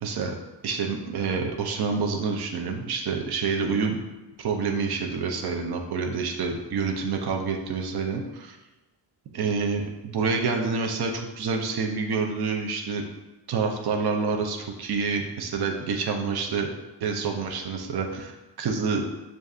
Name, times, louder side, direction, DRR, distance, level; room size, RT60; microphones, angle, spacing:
voice 1, 0.0-0.4 0.6-4.0 4.4-8.6 9.3-13.0 13.5-16.7 17.0-19.0, right 5 dB, 60° right, 2 dB, 0.5 m, -27 dB
6.4 x 2.6 x 2.4 m, 1.1 s
wide cardioid pair, 165°, 45 cm